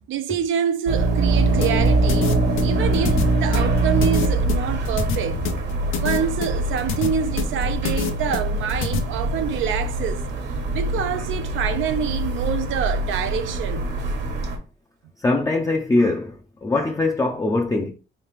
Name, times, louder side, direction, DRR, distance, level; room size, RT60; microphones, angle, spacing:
voice 1, 0.1-2.3 2.6-5.4 6.0-10.2 10.7-13.9, right 8 dB, 80° right, 0.5 m, -26 dB
sound 1, 0.9-14.6, right 2 dB, 60° right, 1.0 m, -23 dB
sound 2, 1.6-9.0, left 8 dB, 85° left, 0.6 m, -27 dB
voice 2, 15.2-17.9, left 2 dB, 15° left, 0.4 m, -22 dB
3.4 x 3.2 x 3.2 m
cardioid pair, 90°, 20 cm